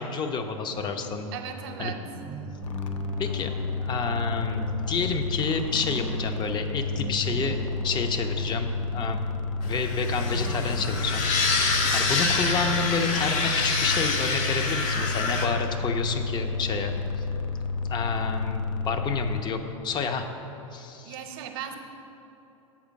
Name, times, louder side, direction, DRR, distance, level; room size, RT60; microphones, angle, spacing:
voice 1, 0.0-1.3 1.8-1.9 3.2-3.5 3.8-9.2 9.7-11.3 11.9-17.0 17.8-18.6 18.9-20.3 20.7-21.2, left 5 dB, 25° left, 6 dB, 0.6 m, -29 dB
sound 1, 0.7-12.4, right 3 dB, 15° right, 0.3 m, -42 dB
voice 2, 1.3-2.0 21.1-21.8, right 9 dB, 50° right, 6 dB, 0.9 m, -36 dB
sound 2, 2.6-19.4, left 3 dB, 65° left, 0.6 m, -31 dB
sound 3, 9.6-15.5, left 4 dB, 40° left, 1.1 m, -27 dB
7.3 x 5.0 x 6.3 m, 3.0 s
figure-of-eight pair, 90°, 17 cm